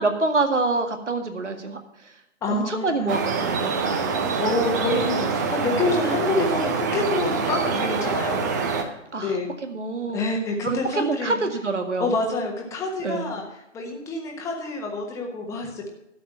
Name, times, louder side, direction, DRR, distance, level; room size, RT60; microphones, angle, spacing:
voice 1, 0.0-1.8 2.5-4.2 9.1-10.2 10.6-12.1 13.0-13.3, right 3 dB, 75° right, 6 dB, 2.0 m, -26 dB
voice 2, 2.4-3.1 4.4-9.5 10.1-11.4 12.0-13.4 13.7-15.9, left 2 dB, 10° left, 1 dB, 1.3 m, -27 dB
sound 1, 3.1-8.8, right 5 dB, 15° right, 0.6 m, -25 dB
12.0 x 7.5 x 6.1 m, 0.85 s
figure-of-eight pair, 135°, 36 cm